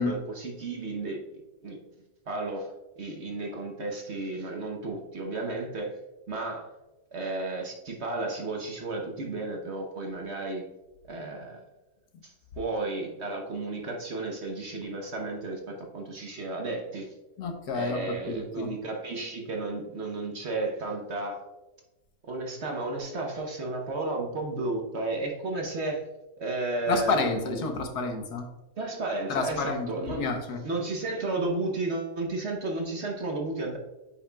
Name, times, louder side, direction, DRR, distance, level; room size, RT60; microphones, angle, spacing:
voice 1, 0.0-1.8 2.3-2.7 3.0-6.0 6.3-6.7 7.1-10.6 11.1-11.6 12.2-17.1 17.7-21.4 22.2-26.1 26.4-27.7 28.8-30.3 30.6-33.8, right 2 dB, 50° right, 1 dB, 1.0 m, -33 dB
voice 2, 17.4-18.0 18.3-18.7 26.9-28.4 29.3-29.9 30.2-30.6, left 4 dB, 75° left, 5 dB, 1.5 m, -29 dB
8.3 x 5.6 x 2.3 m, 1.0 s
omnidirectional pair, 1.7 m